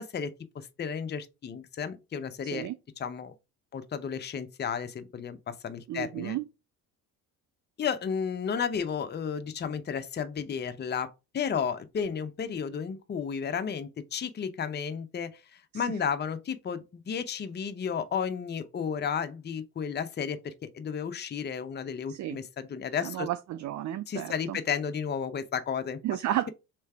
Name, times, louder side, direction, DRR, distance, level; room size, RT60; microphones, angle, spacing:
voice 1, 0.0-2.7 3.0-3.3 3.7-6.4 7.8-15.3 15.7-23.3 24.1-26.0, left 7 dB, 25° left, 0.6 m, -33 dB
voice 2, 2.4-2.7 5.9-6.5 15.7-15.9 22.1-22.4 23.0-24.6 26.0-26.5, right 13 dB, 40° right, 0.4 m, -32 dB
3.3 x 3.2 x 4.6 m
hypercardioid pair, 60°, 46 cm